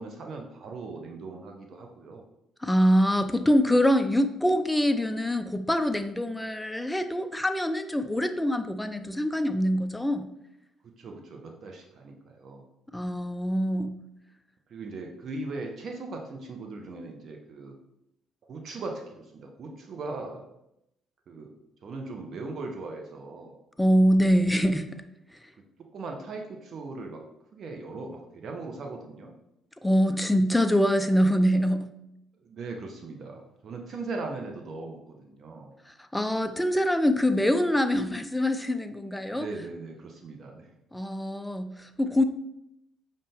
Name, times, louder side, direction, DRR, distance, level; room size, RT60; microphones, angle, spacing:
voice 1, 0.0-2.2 10.8-12.7 14.7-17.8 18.5-20.5 21.3-21.5 21.8-23.6 25.8-27.2 27.5-29.3 32.4-35.7 39.3-40.7, right 3 dB, 50° right, 2 dB, 0.5 m, -39 dB
voice 2, 2.6-10.3 12.9-13.9 23.8-24.9 29.8-31.8 36.1-39.5 40.9-42.2, equal, 5° left, 9 dB, 0.4 m, -24 dB
5.2 x 2.1 x 3.4 m, 0.83 s
figure-of-eight pair, 45°, 0 cm